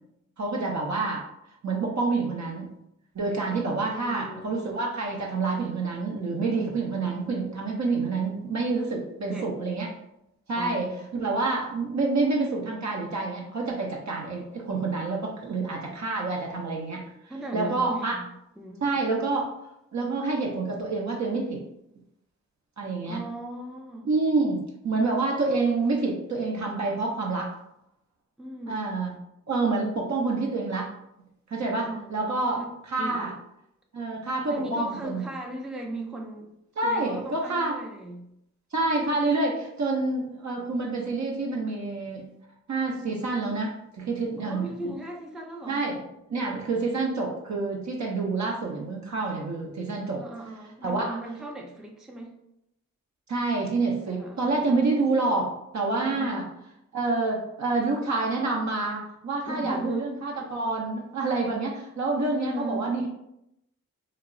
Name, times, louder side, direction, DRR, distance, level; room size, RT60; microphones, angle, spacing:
voice 1, 0.4-1.2 1.5-2.7 3.1-9.9 10.5-10.9 11.1-18.2 18.8-19.5 19.9-21.6 22.8-23.2 24.0-27.5 28.7-29.1 29.5-30.9 31.5-33.3 33.9-35.2 36.8-37.8 38.7-42.2 42.7-44.8 45.7-46.0 46.3-50.2 50.8-51.2 53.3-56.4 56.9-63.1, right 3 dB, 55° right, -2 dB, 0.6 m, -28 dB
voice 2, 3.9-4.6 9.3-9.5 10.5-11.1 17.3-18.3 18.6-19.0 23.1-24.1 28.4-28.8 31.8-32.2 32.6-32.7 33.0-33.4 34.5-36.5 36.8-38.3 44.4-45.8 50.2-52.4 54.2-54.6 56.0-56.5 59.5-60.1 62.3-62.9, right 1 dB, ahead, 0 dB, 0.4 m, -37 dB
2.2 x 2.0 x 3.7 m, 0.82 s
supercardioid pair, 40°, 34 cm